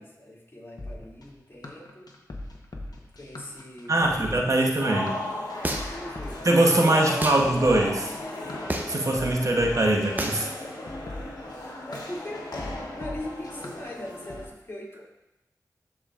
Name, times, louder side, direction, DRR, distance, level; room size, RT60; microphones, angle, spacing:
voice 1, 0.0-2.1 2.9-4.8 5.8-7.6 11.8-15.0, left 1 dB, 35° left, -4 dB, 2.6 m, -40 dB
sound 1, 0.8-14.4, left 2 dB, 70° left, 1.0 m, -41 dB
voice 2, 3.9-5.1 6.4-8.1 8.9-10.5, right 1 dB, 55° right, 0 dB, 1.1 m, -22 dB
sound 2, 4.7-14.5, left 1 dB, 85° left, 1.4 m, -37 dB
sound 3, 5.6-6.1 7.2-7.4 8.7-9.1 10.2-10.5, right 1 dB, 25° right, 0.9 m, -29 dB
12.5 x 4.9 x 2.5 m, 0.93 s
cardioid pair, 45°, 7 cm